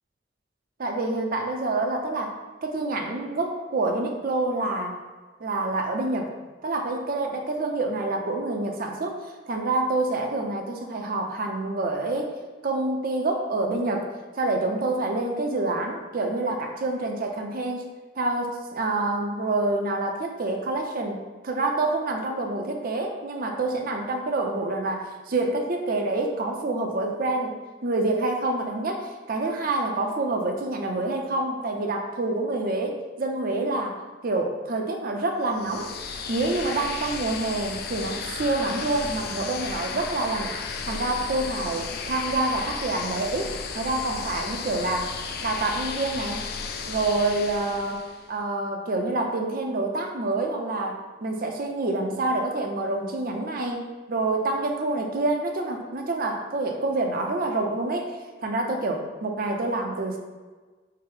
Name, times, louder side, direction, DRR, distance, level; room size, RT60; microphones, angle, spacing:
voice 1, 0.8-2.3 2.6-5.0 5.4-6.3 6.6-9.2 9.5-12.3 12.6-14.1 14.4-40.5 40.9-45.1 45.4-46.4 46.9-48.0 48.3-60.2, right 2 dB, 50° right, 2 dB, 0.6 m, -27 dB
sound 1, 35.5-48.3, left 5 dB, 55° left, 0.4 m, -34 dB
4.7 x 2.1 x 4.7 m, 1.3 s
head